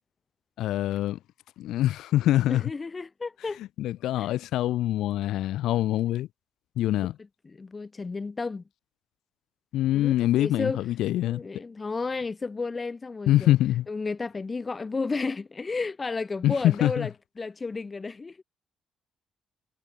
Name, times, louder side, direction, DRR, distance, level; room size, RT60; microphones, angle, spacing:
voice 1, 0.6-1.2 1.6-2.6 3.8-6.3 6.8-7.2 9.7-11.4 13.3-13.9 16.4-17.1, left 14 dB, 85° left, 0.6 m, -24 dB
voice 2, 2.5-3.6 4.2-4.3 7.4-8.6 9.9-10.8 11.2-13.5 13.9-18.4, left 4 dB, 30° left, 0.3 m, -32 dB
cardioid pair, 90°, 0 cm